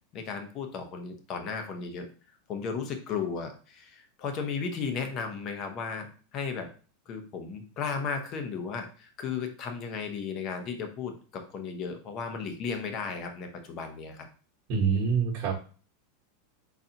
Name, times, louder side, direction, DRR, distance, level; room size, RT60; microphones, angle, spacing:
voice 1, 0.1-2.1 2.5-6.1 6.3-6.7 7.1-14.3, left 5 dB, 35° left, 6 dB, 0.8 m, -35 dB
voice 2, 14.7-15.7, right 6 dB, 45° right, -1 dB, 1.1 m, -26 dB
4.0 x 3.9 x 2.8 m, 0.38 s
supercardioid pair, 150°, 0 cm